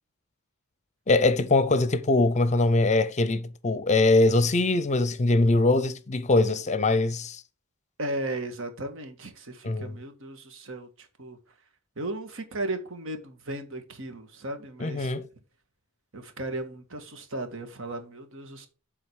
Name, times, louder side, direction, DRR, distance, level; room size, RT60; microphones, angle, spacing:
voice 1, 1.1-7.4 9.6-9.9 14.8-15.3, left 2 dB, 35° left, 0.6 m, -22 dB
voice 2, 8.0-11.4 12.0-15.1 16.1-18.7, right 2 dB, 65° right, 1.6 m, -36 dB
7.8 x 3.9 x 6.2 m
head